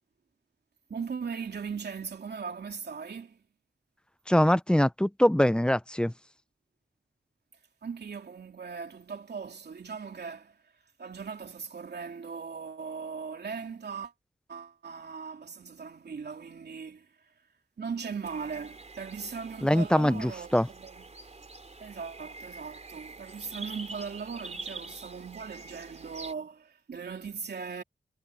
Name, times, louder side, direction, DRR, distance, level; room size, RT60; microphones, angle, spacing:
voice 1, 0.9-3.4 7.8-10.6 11.0-14.1 14.5-17.1 17.8-21.1 21.8-27.8, right 5 dB, 80° right, 3.1 m, -39 dB
voice 2, 4.3-6.1 19.6-20.7, left 1 dB, 5° left, 0.6 m, -23 dB
sound 1, 18.2-26.3, right 3 dB, 40° right, 3.8 m, -46 dB
wide cardioid pair, 80°, 17 cm